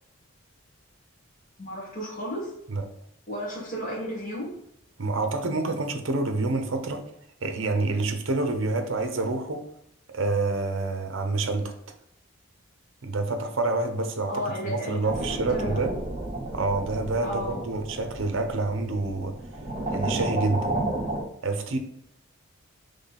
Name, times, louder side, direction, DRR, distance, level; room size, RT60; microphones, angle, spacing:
voice 1, 1.6-2.6 3.3-4.6 14.3-15.9 17.2-17.6, equal, 35° left, 1.4 m, -33 dB
voice 2, 5.0-7.0 7.4-9.7 10.1-11.7 13.0-15.9 16.5-19.4 19.9-20.7 21.4-21.8, right 3 dB, 65° right, 0.6 m, -27 dB
sound 1, 15.1-21.2, right 1 dB, 30° right, 0.7 m, -32 dB
3.8 x 3.2 x 4.1 m
head